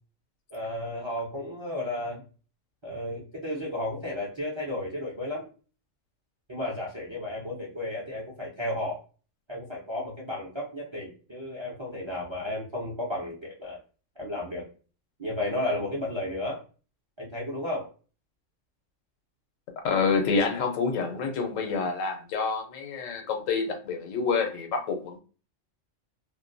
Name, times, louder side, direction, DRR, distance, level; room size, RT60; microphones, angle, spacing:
voice 1, 0.5-2.2 2.8-5.4 6.5-9.0 9.5-13.8 14.2-14.6 15.2-16.6 17.2-17.9, left 1 dB, 40° right, 0.4 m, -33 dB
voice 2, 19.8-25.2, left 5 dB, 90° left, 1.0 m, -27 dB
2.4 x 2.1 x 2.5 m
omnidirectional pair, 1.3 m